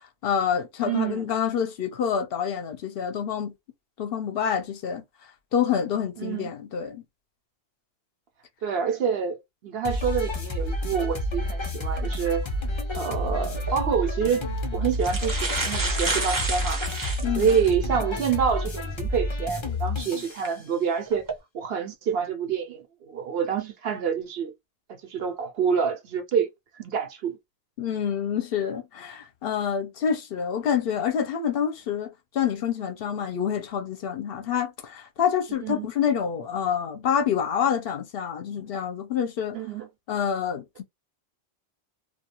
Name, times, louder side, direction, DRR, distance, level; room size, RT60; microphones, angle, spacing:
voice 1, 0.2-3.5 4.0-5.0 5.5-7.0 17.2-17.5 27.8-39.6 40.1-40.8, left 8 dB, 65° left, 0.8 m, -27 dB
voice 2, 0.8-1.3 6.2-6.5 8.6-12.5 12.9-14.4 14.7-16.9 17.4-21.3 21.5-24.5 24.9-26.5 26.8-27.4 35.6-35.9 39.5-39.9, right 7 dB, 70° right, 0.9 m, -27 dB
sound 1, 9.8-20.4, left 1 dB, 40° left, 0.5 m, -30 dB
sound 2, 13.6-13.8 14.6-14.7 14.9-17.7 18.3-18.4 20.2-20.5 21.1-21.3, right 3 dB, 25° right, 0.6 m, -30 dB
2.3 x 2.3 x 2.8 m
omnidirectional pair, 1.1 m